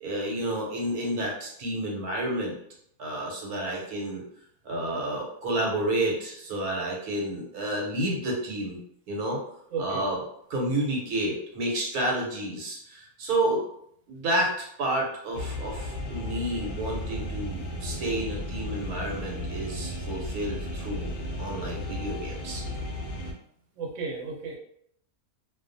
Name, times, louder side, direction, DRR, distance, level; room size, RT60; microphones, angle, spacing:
voice 1, 0.0-2.6 3.0-4.2 4.6-8.8 9.1-9.4 9.8-10.2 10.5-13.6 14.1-22.6, right 1 dB, 85° right, -2 dB, 1.2 m, -30 dB
voice 2, 9.7-10.0 23.8-24.6, right 4 dB, 65° right, -2 dB, 1.0 m, -33 dB
sound 1, 15.3-23.3, left 1 dB, 80° left, 0.4 m, -34 dB
2.4 x 2.3 x 2.5 m, 0.69 s
omnidirectional pair, 1.6 m